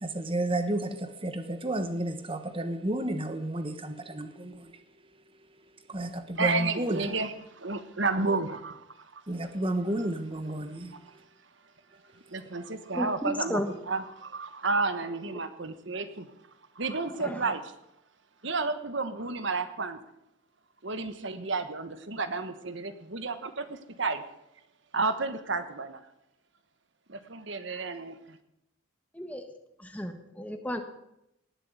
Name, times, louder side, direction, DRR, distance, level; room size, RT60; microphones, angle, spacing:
voice 1, 0.0-4.7 5.9-7.1 9.3-10.9, right 1 dB, 25° right, 8 dB, 1.3 m, -31 dB
voice 2, 6.4-8.8 9.1-9.2 10.9-11.0 12.3-16.3 16.7-17.6 18.4-20.0 20.8-24.2 24.9-26.0 27.1-28.4, right 3 dB, 60° right, 10 dB, 1.3 m, -31 dB
voice 3, 12.9-13.8 17.2-17.4 29.1-29.5 29.8-30.8, left 1 dB, 5° left, 6 dB, 1.4 m, -33 dB
18.5 x 7.7 x 8.1 m, 0.83 s
head